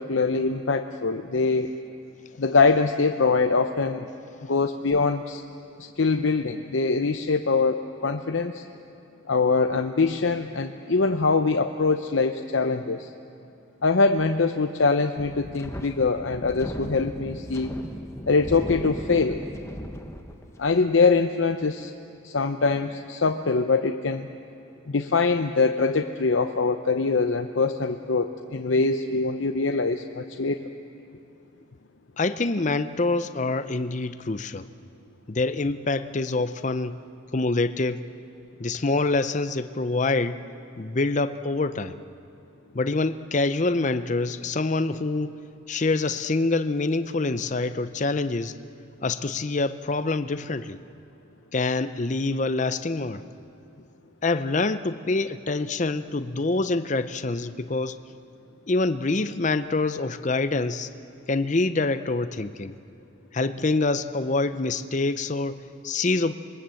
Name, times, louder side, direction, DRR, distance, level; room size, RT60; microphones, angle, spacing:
voice 1, 0.0-1.7 2.4-4.1 4.4-5.4 5.8-8.6 9.3-13.1 13.8-17.7 18.3-19.4 20.6-21.9 22.2-24.3 24.9-30.7, left 4 dB, 70° left, 6 dB, 0.8 m, -23 dB
Wind, 15.2-20.8, equal, 15° left, 1.1 m, -37 dB
voice 2, 32.2-34.7 35.3-37.0 37.3-38.0 38.6-40.4 40.8-42.0 42.7-45.3 45.7-48.5 49.0-50.8 51.5-53.2 54.2-58.0 58.7-60.9 61.3-62.7 63.3-66.3, left 3 dB, 35° left, 11 dB, 0.6 m, -26 dB
27.0 x 21.5 x 7.7 m, 2.8 s
head